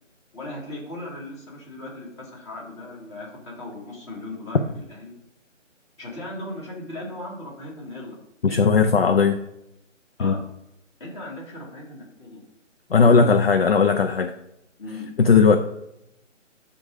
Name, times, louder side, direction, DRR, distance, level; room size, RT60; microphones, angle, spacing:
voice 1, 0.3-5.1 6.0-8.1 8.5-8.8 10.2-10.4 11.0-12.4 12.9-13.4 14.8-15.1, left 1 dB, 20° left, -3 dB, 2.2 m, -37 dB
voice 2, 8.4-9.4 10.2-10.3 12.9-14.3 15.2-15.6, left 5 dB, 50° left, 7 dB, 0.6 m, -17 dB
11.0 x 3.8 x 5.0 m, 0.84 s
figure-of-eight pair, 155°, 38 cm